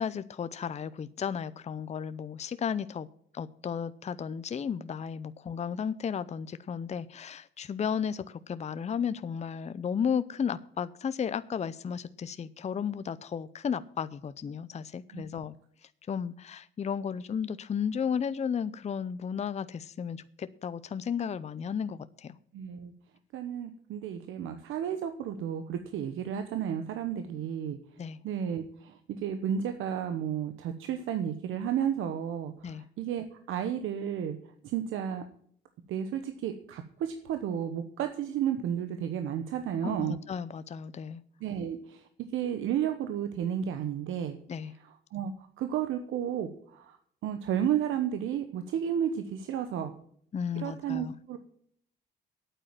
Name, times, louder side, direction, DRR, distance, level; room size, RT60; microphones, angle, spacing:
voice 1, 0.0-3.1 3.3-15.5 16.1-22.4 28.0-28.2 32.6-32.8 39.8-41.2 44.5-44.7 50.3-51.1, left 7 dB, 35° left, 14 dB, 0.6 m, -34 dB
voice 2, 15.1-15.4 22.5-22.9 23.3-27.8 28.2-34.4 34.6-35.2 35.9-40.2 41.4-42.0 42.3-44.4 45.1-47.0 47.2-50.0 50.5-51.4, right 9 dB, 85° right, 8 dB, 1.0 m, -32 dB
9.1 x 8.6 x 8.9 m, 0.64 s
cardioid pair, 90°, 20 cm